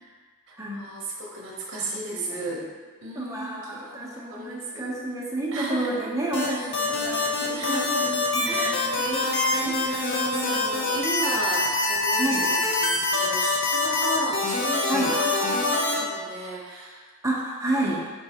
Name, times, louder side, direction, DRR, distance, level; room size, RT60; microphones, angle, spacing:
voice 1, 0.5-2.6 3.0-5.0 5.5-6.0 6.4-6.6 7.5-8.1 8.4-17.1, right 1 dB, 55° right, -2 dB, 0.7 m, -34 dB
voice 2, 1.8-2.5 3.2-9.3 9.6-10.7 12.2-12.5 14.9-15.1 17.2-18.1, right 2 dB, 15° right, -4 dB, 0.6 m, -30 dB
sound 1, 6.3-16.0, left 3 dB, 55° left, 0.6 m, -25 dB
4.6 x 3.1 x 2.8 m, 1.5 s
head